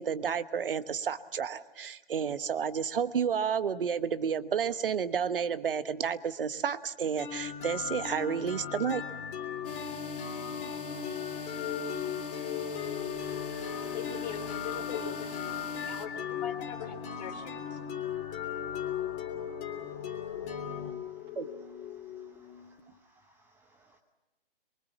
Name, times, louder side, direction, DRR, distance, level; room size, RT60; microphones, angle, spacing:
voice 1, 0.0-9.0 21.4-21.5, right 7 dB, 70° right, 1.2 m, -31 dB
sound 1, 7.2-22.8, left 8 dB, 25° left, 3.1 m, -37 dB
sound 2, 9.6-16.1, left 5 dB, 65° left, 2.6 m, -41 dB
voice 2, 13.8-17.9, left 7 dB, 45° left, 3.4 m, -41 dB
voice 3, 19.5-21.4 21.9-24.0, right 2 dB, 5° right, 0.9 m, -64 dB
24.0 x 23.5 x 7.2 m
hypercardioid pair, 145°, 29 cm